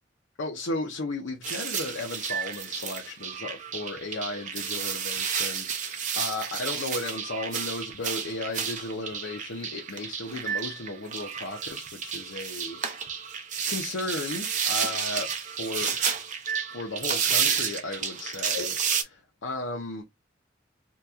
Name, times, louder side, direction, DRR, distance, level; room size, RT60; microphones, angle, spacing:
voice 1, 0.4-12.8 13.7-16.2 16.7-20.0, left 2 dB, 75° left, 0.6 m, -35 dB
sound 1, 1.4-19.0, right 7 dB, 40° right, 0.5 m, -31 dB
2.8 x 2.3 x 3.4 m
head